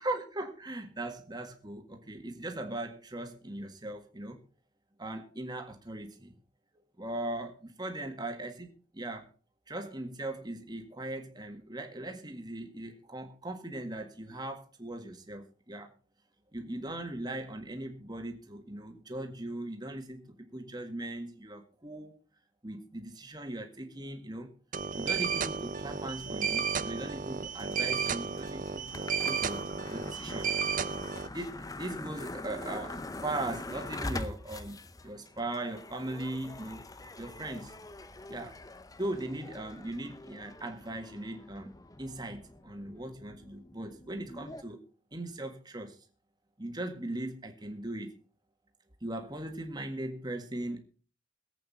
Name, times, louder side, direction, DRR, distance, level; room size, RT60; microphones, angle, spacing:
voice 1, 0.0-4.4 5.0-6.3 7.0-9.3 9.7-15.9 16.5-22.1 22.6-24.5 25.0-30.5 31.3-36.8 37.2-37.7 38.3-38.6 39.0-41.7 42.0-44.8 45.1-46.0 46.6-48.1 49.0-50.8, right 1 dB, 20° right, 1.8 m, -39 dB
sound 1, 24.7-31.3, right 6 dB, 40° right, 0.8 m, -33 dB
sound 2, 27.6-44.6, left 2 dB, 20° left, 0.7 m, -44 dB
21.5 x 8.3 x 4.2 m
head